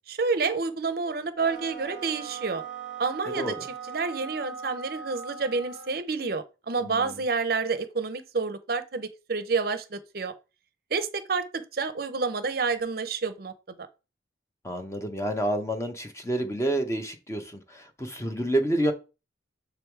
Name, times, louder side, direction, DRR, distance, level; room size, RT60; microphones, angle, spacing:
voice 1, 0.1-2.6 3.0-3.6 3.9-10.3 10.9-13.9, right 4 dB, 50° right, 0.6 m, -29 dB
sound 1, 1.3-6.0, right 6 dB, 75° left, 1.7 m, -40 dB
voice 2, 6.8-7.2 14.6-18.9, right 1 dB, 15° left, 0.7 m, -29 dB
6.9 x 3.4 x 4.5 m
head